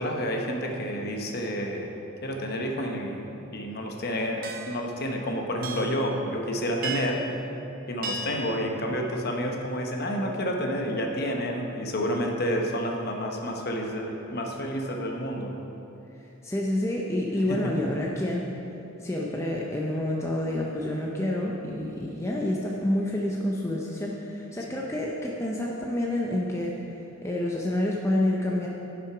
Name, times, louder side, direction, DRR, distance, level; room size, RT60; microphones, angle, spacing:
voice 1, 0.0-1.9 2.2-7.3 7.9-15.5 17.5-17.7, equal, 45° left, 1 dB, 0.9 m, -29 dB
sound 1, 4.4-4.8 5.6-6.0 6.8-7.3 8.0-8.5, right 4 dB, 40° right, 0.5 m, -34 dB
voice 2, 16.4-18.4 19.0-28.7, left 1 dB, 15° left, -3 dB, 0.5 m, -28 dB
10.5 x 6.0 x 4.9 m, 3.0 s
head